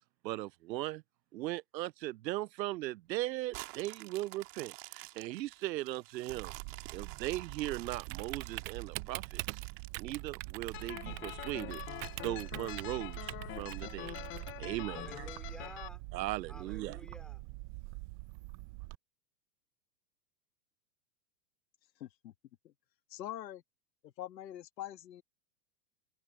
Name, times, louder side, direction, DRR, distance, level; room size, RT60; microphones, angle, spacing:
voice 1, 0.2-1.0 1.3-6.5 6.9-9.6 10.0-14.2 14.6-15.3 16.1-17.0, right 16 dB, 85° right, 0.6 m, -38 dB
sound 1, 3.5-10.8 11.3-11.4 11.9-13.1 13.7-13.8, right 24 dB, 50° right, 3.0 m, -50 dB
Typing, 6.3-18.9, right 22 dB, 25° right, 0.6 m, -44 dB
sound 2, 10.7-15.9, left 16 dB, 25° left, 1.0 m, -45 dB
voice 2, 14.8-16.0 16.5-17.4, left 1 dB, ahead, 3.5 m, -52 dB
voice 3, 22.0-22.3 23.1-23.6 24.0-25.2, left 13 dB, 80° left, 1.8 m, -44 dB
hypercardioid pair, 145°, 49 cm